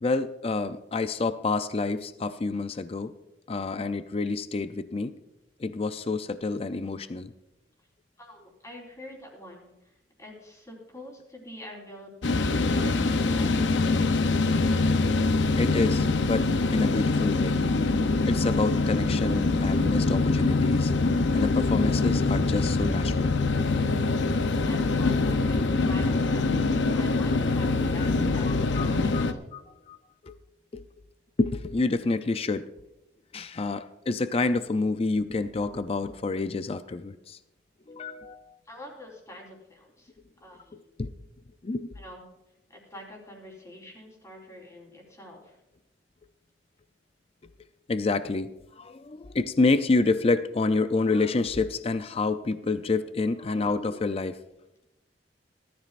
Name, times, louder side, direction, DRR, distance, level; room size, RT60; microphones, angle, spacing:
voice 1, 0.0-3.1 3.5-5.1 5.6-7.3 15.6-17.6 18.3-20.9 21.3-23.4 28.0-28.1 28.5-30.0 30.2-30.4 30.7-30.8 31.4-32.7 33.3-37.4 37.9-38.6 41.0-41.1 41.6-41.9 47.9-54.4, left 3 dB, 35° left, 11 dB, 0.4 m, -28 dB
voice 2, 8.2-9.9 10.2-12.1 12.4-13.9 24.6-29.4 38.6-40.1 40.4-41.0 41.9-42.2 42.7-45.6, left 1 dB, 20° left, -1 dB, 4.0 m, -46 dB
sound 1, 12.2-29.3, left 3 dB, 85° left, 0.7 m, -24 dB
18.5 x 13.0 x 2.5 m, 0.93 s
head